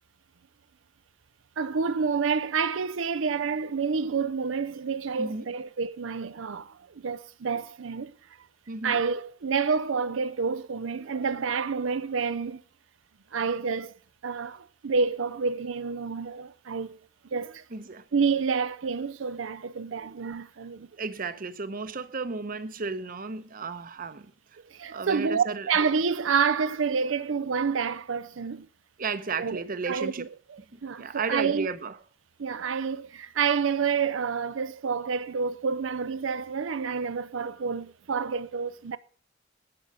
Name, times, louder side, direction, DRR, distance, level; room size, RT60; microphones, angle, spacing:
voice 1, 1.6-6.7 7.0-8.1 8.8-12.6 13.3-13.9 14.2-17.0 17.3-17.6 18.1-20.9 24.7-28.7 29.4-31.7 32.4-39.0, right 5 dB, 90° right, 0.6 m, -28 dB
voice 2, 5.2-5.5 8.7-9.0 17.7-18.0 21.0-24.3 24.9-25.7 29.0-30.3 30.7-32.0, right 4 dB, 45° right, 0.8 m, -33 dB
12.5 x 8.7 x 5.5 m
head